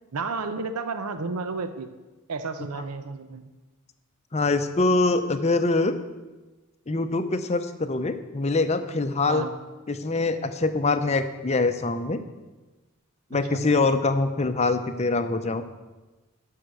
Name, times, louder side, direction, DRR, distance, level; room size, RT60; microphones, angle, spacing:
voice 1, 0.1-1.9 2.3-3.4 9.3-9.5 13.5-13.6, right 4 dB, 85° right, 9 dB, 0.6 m, -31 dB
voice 2, 4.3-5.9 6.9-9.5 9.9-12.2 13.3-15.6, left 3 dB, 30° left, 9 dB, 0.6 m, -24 dB
12.5 x 5.7 x 6.3 m, 1.2 s
head